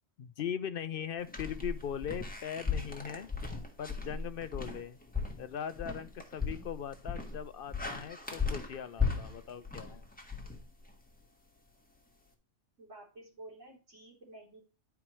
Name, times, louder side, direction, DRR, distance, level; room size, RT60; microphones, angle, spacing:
voice 1, 0.2-3.3 3.8-5.0 5.4-10.0, left 8 dB, 60° left, 0.6 m, -40 dB
sound 1, 1.3-11.1, left 5 dB, 5° left, 1.4 m, -37 dB
voice 2, 12.8-14.6, right 2 dB, 75° right, 3.5 m, -51 dB
11.0 x 4.7 x 3.1 m
omnidirectional pair, 1.3 m